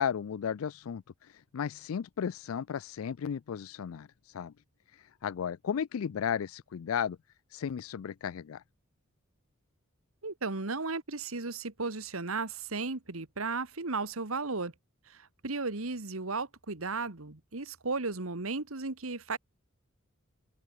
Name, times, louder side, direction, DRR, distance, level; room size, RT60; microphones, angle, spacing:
voice 1, 0.0-4.5 4.9-7.2 7.5-8.6, left 8 dB, 80° left, 0.4 m, -34 dB
voice 2, 10.2-14.7 15.1-19.4, right 3 dB, 80° right, 1.8 m, -35 dB
open air
head